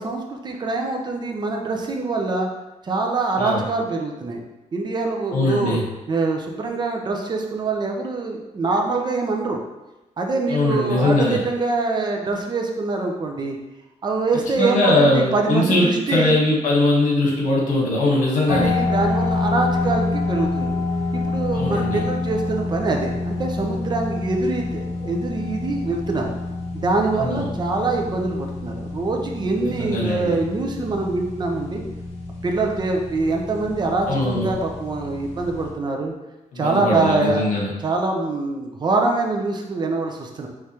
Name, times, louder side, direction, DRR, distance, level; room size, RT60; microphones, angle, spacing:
voice 1, 0.0-2.5 2.8-4.4 4.7-5.8 6.1-9.6 10.2-13.6 14.0-16.4 18.5-20.8 21.1-26.3 26.7-31.8 32.4-36.1 36.6-40.5, right 3 dB, 35° right, 2 dB, 0.6 m, -24 dB
voice 2, 5.3-5.8 10.5-11.4 14.5-18.7 21.5-22.0 27.1-27.4 29.7-30.3 34.1-34.5 36.5-37.7, left 2 dB, 80° left, -3 dB, 1.3 m, -21 dB
sound 1, 18.5-35.7, left 3 dB, 55° left, 1.1 m, -27 dB
4.8 x 3.2 x 2.9 m, 1.0 s
cardioid pair, 120°, 13 cm